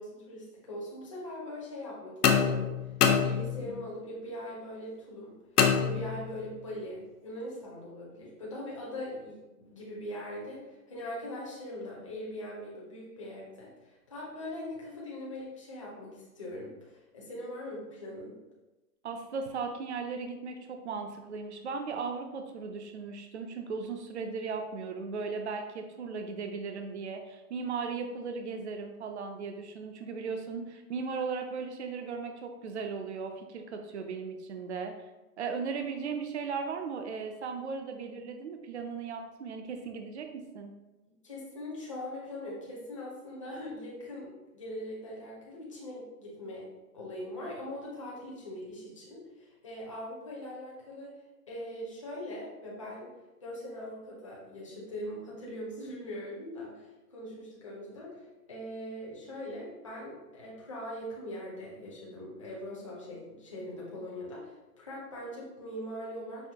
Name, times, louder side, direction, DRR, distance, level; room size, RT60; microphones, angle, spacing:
voice 1, 0.0-2.8 3.1-18.3 41.2-46.7 46.9-51.1 51.5-53.1 53.4-66.5, left 1 dB, 20° left, -5 dB, 0.6 m, -41 dB
sound 1, 2.2-3.9 5.6-6.5, left 7 dB, 85° left, 0.7 m, -26 dB
voice 2, 19.0-34.9 35.4-40.7, right 5 dB, 50° right, 5 dB, 0.5 m, -37 dB
5.5 x 2.6 x 2.8 m, 1.0 s
hypercardioid pair, 175°, 45 cm